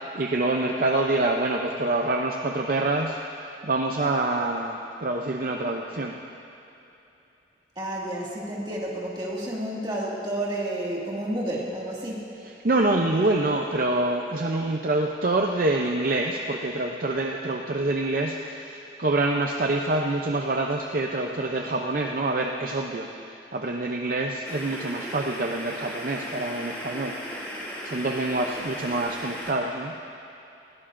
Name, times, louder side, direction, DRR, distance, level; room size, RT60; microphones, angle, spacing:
voice 1, 0.0-6.2 12.6-27.4 27.8-29.9, right 2 dB, 45° right, 1 dB, 0.5 m, -26 dB
voice 2, 7.8-12.3, right 1 dB, 25° right, -4 dB, 2.0 m, -30 dB
sound 1, 24.4-29.5, equal, 10° left, 1.9 m, -36 dB
20.0 x 16.0 x 2.6 m, 2.8 s
head